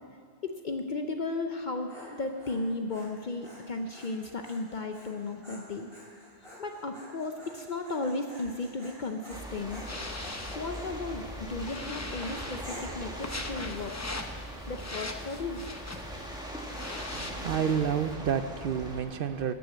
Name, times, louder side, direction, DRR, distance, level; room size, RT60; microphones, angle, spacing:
voice 1, 0.4-5.9 6.6-9.8 10.6-14.0 14.7-15.7, left 3 dB, 50° left, 5 dB, 0.7 m, -35 dB
Dog, 1.5-10.9 11.5-11.9 12.6-13.1, equal, 25° right, 3.2 m, -50 dB
sound 1, 9.3-18.1, left 2 dB, 20° left, 0.6 m, -42 dB
sound 2, 9.3-19.0, equal, 5° right, 1.4 m, -41 dB
voice 2, 17.1-19.5, right 7 dB, 60° right, 10 dB, 0.7 m, -29 dB
13.5 x 6.5 x 8.3 m, 2.2 s
omnidirectional pair, 1.1 m